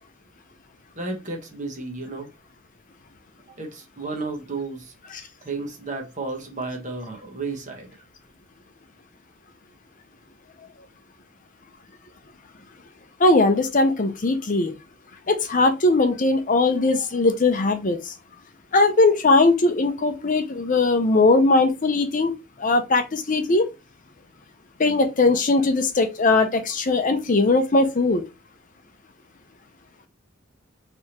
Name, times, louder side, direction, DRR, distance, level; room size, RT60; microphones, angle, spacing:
voice 1, 0.9-2.3 3.6-4.9 5.4-7.9, right 3 dB, 35° right, 1.2 m, -32 dB
voice 2, 13.2-14.7 15.3-18.1 18.7-22.3 22.6-23.7 24.8-28.2, left 3 dB, 40° left, 0.6 m, -19 dB
4.6 x 3.4 x 2.9 m
head